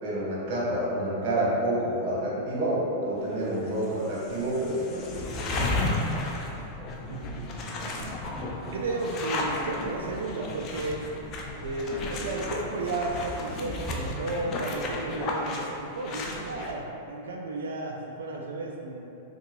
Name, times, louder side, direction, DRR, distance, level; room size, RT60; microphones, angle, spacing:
voice 1, 0.0-5.6, right 1 dB, 55° right, -7 dB, 1.2 m, -28 dB
sound 1, 3.6-3.7 4.0-16.7, left 2 dB, 35° left, 0.4 m, -33 dB
voice 2, 7.1-8.1 8.7-11.0 11.6-19.1, right 2 dB, 85° right, 0 dB, 0.3 m, -33 dB
3.6 x 2.3 x 3.0 m, 2.9 s
hypercardioid pair, 135°, 0 cm